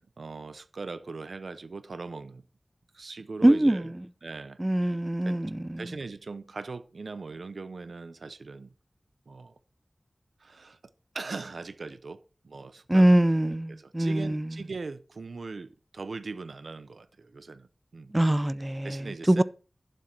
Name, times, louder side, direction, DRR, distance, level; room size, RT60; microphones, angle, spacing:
voice 1, 0.2-2.4 2.9-3.9 4.2-4.6 5.2-5.4 5.8-8.7 9.3-9.6 10.4-10.8 11.1-13.1 13.4-18.1 18.8-19.4, right 4 dB, 90° right, 0.6 m, -40 dB
voice 2, 3.4-3.8 4.6-5.9 12.9-14.5 18.1-19.4, right 1 dB, 25° right, 0.5 m, -23 dB
11.0 x 7.5 x 4.4 m
wide cardioid pair, 45°, 0 cm